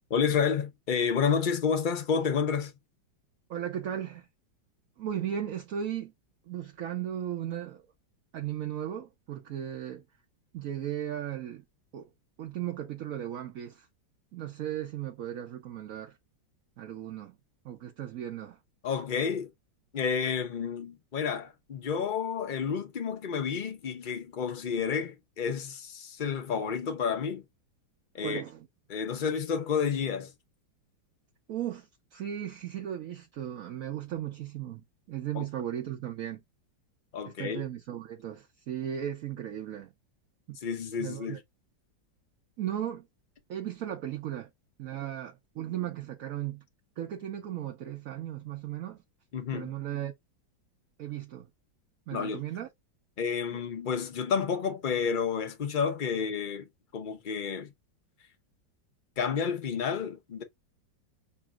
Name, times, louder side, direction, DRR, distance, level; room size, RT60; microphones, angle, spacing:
voice 1, 0.1-2.7 18.8-19.5 19.9-27.4 28.1-28.4 28.9-30.3 35.3-35.5 37.1-37.6 40.6-41.4 49.3-49.7 52.1-52.4 53.2-56.7 56.9-57.7 59.2-60.4, left 6 dB, 45° left, 0.7 m, -30 dB
voice 2, 3.5-4.3 5.0-6.1 6.4-7.9 8.3-10.0 10.5-11.6 11.9-12.1 12.4-13.9 14.3-16.2 16.8-17.4 17.6-18.6 28.2-28.7 31.5-36.4 37.2-39.9 40.5-40.6 41.0-41.4 42.6-43.1 43.5-44.5 44.8-46.6 47.0-49.0 49.5-50.1 51.0-51.5 52.1-52.7 53.5-53.6, right 10 dB, 60° right, 0.9 m, -36 dB
6.9 x 2.8 x 2.3 m
omnidirectional pair, 2.1 m